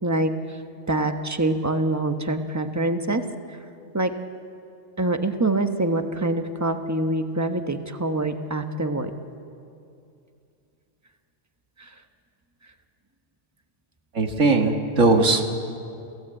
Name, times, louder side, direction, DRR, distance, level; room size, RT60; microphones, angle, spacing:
voice 1, 0.9-3.2 3.5-3.6 3.9-4.1 5.0-9.1, right 2 dB, 15° right, 7 dB, 1.1 m, -25 dB
voice 2, 14.1-15.6, right 3 dB, 85° right, 4 dB, 2.2 m, -19 dB
28.5 x 16.0 x 8.9 m, 2.6 s
omnidirectional pair, 1.3 m